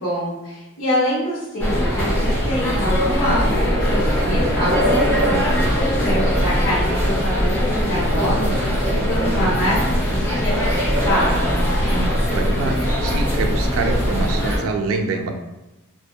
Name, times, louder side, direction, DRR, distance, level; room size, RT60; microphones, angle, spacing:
voice 1, 0.0-11.5, equal, 75° left, -9 dB, 1.0 m, -25 dB
sound 1, 1.6-14.6, equal, 10° left, 0.5 m, -20 dB
voice 2, 12.3-15.3, right 3 dB, 90° right, 4 dB, 0.4 m, -25 dB
2.6 x 2.2 x 2.2 m, 1.0 s
head